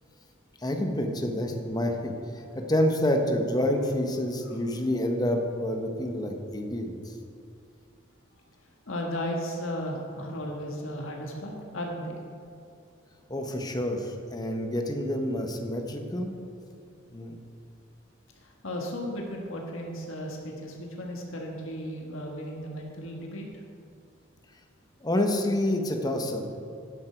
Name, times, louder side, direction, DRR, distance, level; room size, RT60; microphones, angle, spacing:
voice 1, 0.6-7.1 13.3-16.3 17.1-17.4 25.0-26.5, left 1 dB, 20° left, 3 dB, 1.1 m, -28 dB
voice 2, 8.9-12.2 18.3-23.5, equal, 70° left, 0 dB, 1.6 m, -35 dB
12.0 x 10.0 x 4.5 m, 2.5 s
head